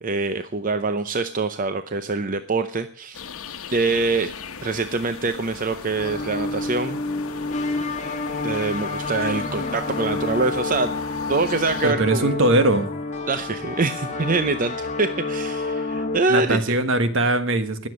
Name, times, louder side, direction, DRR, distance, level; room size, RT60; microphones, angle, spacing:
voice 1, 0.0-3.2 3.7-4.3 4.6-7.0 8.4-10.9 11.3-12.3 13.3-16.6, right 3 dB, 40° right, 10 dB, 0.7 m, -24 dB
sound 1, 3.1-11.9, left 5 dB, 90° left, 1.1 m, -38 dB
sound 2, 6.0-16.2, left 3 dB, 35° left, 2.1 m, -29 dB
voice 2, 11.8-12.9 16.3-17.9, right 1 dB, 65° right, 10 dB, 1.5 m, -20 dB
19.5 x 7.5 x 6.4 m, 0.43 s
head